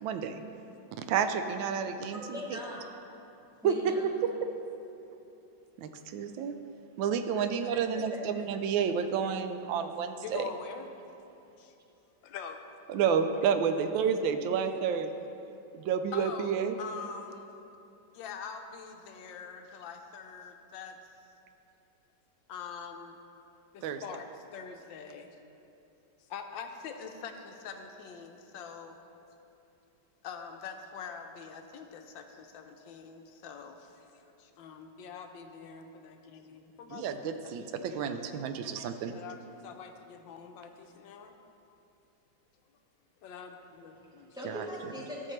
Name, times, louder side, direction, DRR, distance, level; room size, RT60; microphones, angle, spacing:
voice 1, 0.0-0.4 1.0-2.4 3.6-3.7 5.8-6.5 7.0-10.5 12.9-15.1 15.7-16.7 23.8-24.0 36.9-39.1 44.4-44.7, right 7 dB, 85° right, 8 dB, 1.3 m, -30 dB
voice 2, 2.1-2.9 3.6-4.1 7.3-8.2 44.3-45.3, equal, 5° right, -5 dB, 1.0 m, -41 dB
voice 3, 10.2-10.9 11.6-11.7 12.2-12.6 16.1-17.5 18.1-21.0 22.5-23.2 23.7-25.3 26.3-29.0 30.2-34.1 34.4-37.7 38.0-38.4 39.1-41.3 43.2-44.4, left 6 dB, 80° left, 5 dB, 1.4 m, -44 dB
13.5 x 6.7 x 3.2 m, 2.8 s
omnidirectional pair, 2.1 m